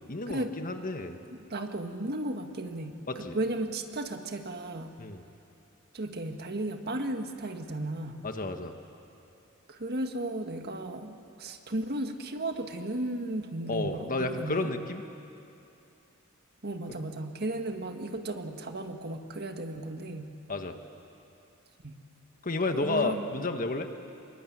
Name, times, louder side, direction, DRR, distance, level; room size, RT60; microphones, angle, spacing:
voice 1, 0.1-1.2 3.1-3.4 5.0-5.2 8.2-8.7 13.7-15.0 20.5-20.7 22.4-23.9, left 2 dB, 40° left, 6 dB, 1.5 m, -31 dB
voice 2, 1.3-4.9 5.9-8.2 9.7-14.7 16.6-20.4 21.8-22.0 22.7-23.3, right 1 dB, 50° right, 5 dB, 1.7 m, -35 dB
26.5 x 23.0 x 9.4 m, 2.7 s
head